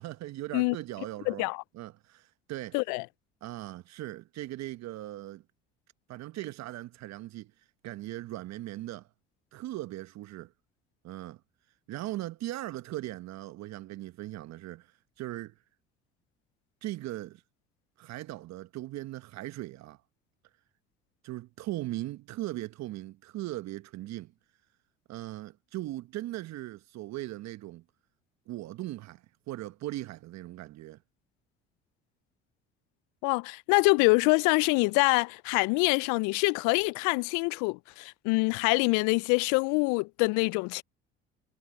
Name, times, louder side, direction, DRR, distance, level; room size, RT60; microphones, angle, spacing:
voice 1, 0.0-1.5 1.7-2.8 3.4-5.4 6.1-9.1 9.5-10.5 11.0-11.4 11.9-15.6 16.8-17.4 18.0-20.0 21.2-24.3 25.1-27.8 28.5-31.0, right 16 dB, 60° right, 1.2 m, -39 dB
voice 2, 1.3-1.6 2.7-3.0 33.2-40.8, left 30 dB, 65° left, 0.6 m, -25 dB
hypercardioid pair, 60°, 31 cm